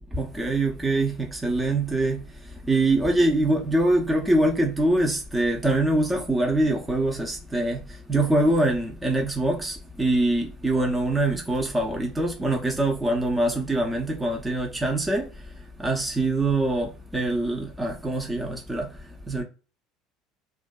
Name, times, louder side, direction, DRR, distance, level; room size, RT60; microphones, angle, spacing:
voice 1, 0.1-2.2 2.7-15.3 15.8-19.4, right 2 dB, 15° right, 0.5 m, -24 dB
2.5 x 2.2 x 2.2 m
supercardioid pair, 85°, 0 cm